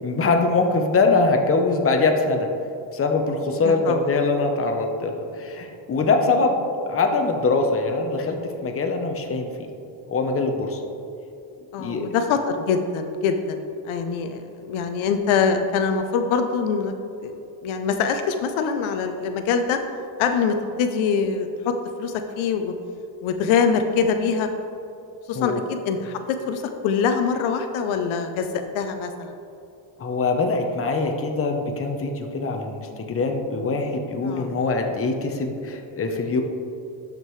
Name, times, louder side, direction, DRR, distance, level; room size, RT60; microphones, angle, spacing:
voice 1, 0.0-2.5 2.9-9.5 10.1-10.8 11.8-12.1 25.3-25.6 30.0-36.4, left 3 dB, 30° left, 4 dB, 0.9 m, -23 dB
voice 2, 3.6-4.2 11.7-16.9 17.2-19.8 20.2-21.7 22.0-22.7 23.2-24.5 25.3-29.3 34.2-34.5, left 6 dB, 80° left, 7 dB, 0.7 m, -24 dB
12.0 x 5.2 x 3.2 m, 2.7 s
cardioid pair, 105°, 48 cm